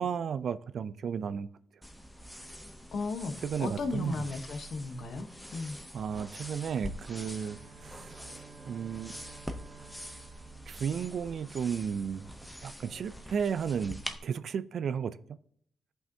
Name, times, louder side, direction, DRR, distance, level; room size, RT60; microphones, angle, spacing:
voice 1, 0.0-1.5 3.4-4.3 5.9-9.2 10.7-12.3 12.6-15.2, right 7 dB, 60° right, 15 dB, 0.3 m, -34 dB
sound 1, 1.8-14.2, equal, 5° left, 0.6 m, -45 dB
voice 2, 2.9-3.3 3.6-5.8, left 3 dB, 60° left, 8 dB, 0.9 m, -35 dB
Bowed string instrument, 6.9-11.8, right 7 dB, 75° right, 1.5 m, -54 dB
16.0 x 5.6 x 2.7 m, 0.67 s
cardioid pair, 130°, 0 cm